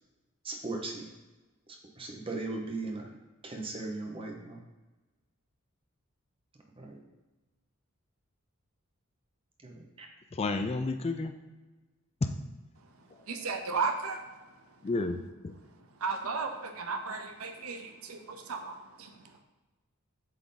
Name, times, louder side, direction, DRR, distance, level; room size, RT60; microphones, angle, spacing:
voice 1, 0.4-1.1 1.7-3.1 3.4-4.6 6.8-7.0 9.6-10.1, right 2 dB, 25° right, 1 dB, 0.9 m, -38 dB
voice 2, 10.3-11.3 12.2-12.3 14.8-15.5, left 3 dB, 30° left, 6 dB, 0.4 m, -31 dB
voice 3, 13.3-14.2 16.0-19.3, right 4 dB, 85° right, 5 dB, 0.7 m, -34 dB
7.7 x 3.5 x 3.9 m, 1.2 s
head